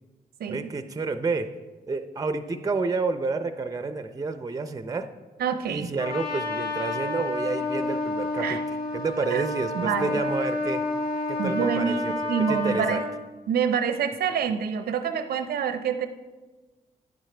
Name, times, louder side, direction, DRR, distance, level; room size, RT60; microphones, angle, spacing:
voice 1, 0.5-1.5 1.9-5.1 5.7-10.8 11.3-12.1 12.5-13.0, right 4 dB, 25° right, 9 dB, 0.5 m, -29 dB
voice 2, 5.4-5.9 8.4-8.6 9.3-9.4 9.7-10.2 11.4-13.0 13.5-16.1, right 7 dB, 90° right, 9 dB, 0.6 m, -26 dB
Trumpet, 6.0-13.1, left 2 dB, 75° left, 2.3 m, -29 dB
9.7 x 9.0 x 3.3 m, 1.2 s
cardioid pair, 75°, 15 cm